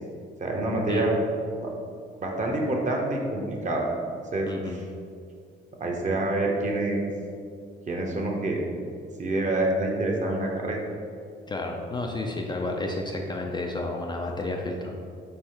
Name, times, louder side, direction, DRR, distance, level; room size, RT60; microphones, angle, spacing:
voice 1, 0.4-1.1 1.6-1.7 2.2-3.9 4.3-4.8 5.8-7.0 7.9-8.6 9.2-10.8, right 2 dB, 40° right, 0 dB, 0.8 m, -27 dB
voice 2, 4.5-4.8 11.5-14.9, left 2 dB, 20° left, 1 dB, 0.4 m, -31 dB
3.4 x 3.1 x 4.3 m, 2.3 s
cardioid pair, 90°, 20 cm